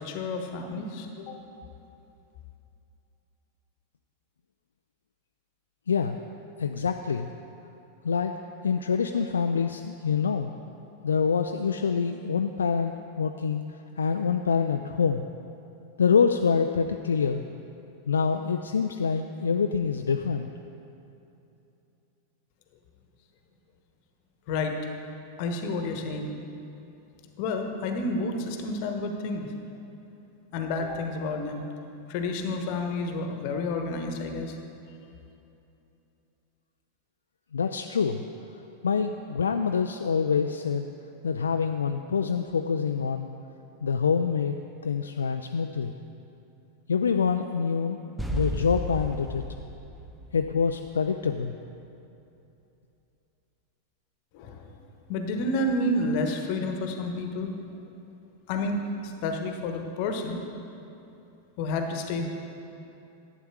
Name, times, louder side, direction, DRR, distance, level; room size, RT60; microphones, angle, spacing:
voice 1, 0.0-1.4 24.5-24.8 25.4-26.3 27.4-29.5 30.5-31.6 32.1-34.5 54.3-54.7 55.1-57.5 58.5-60.4 61.6-62.3, left 2 dB, 45° left, 4 dB, 1.1 m, -30 dB
voice 2, 5.9-6.2 6.6-7.3 8.0-8.3 8.6-10.5 11.0-13.6 14.0-15.3 16.0-17.4 18.1-20.5 37.5-38.2 38.8-40.9 41.2-43.3 43.8-44.6 44.8-45.9 46.9-48.0 48.3-49.4 50.3-51.6, left 6 dB, 70° left, 6 dB, 0.3 m, -26 dB
sound 1, 48.2-51.1, right 1 dB, 5° right, 0.7 m, -34 dB
11.0 x 8.2 x 4.7 m, 2.8 s
figure-of-eight pair, 90°, 0 cm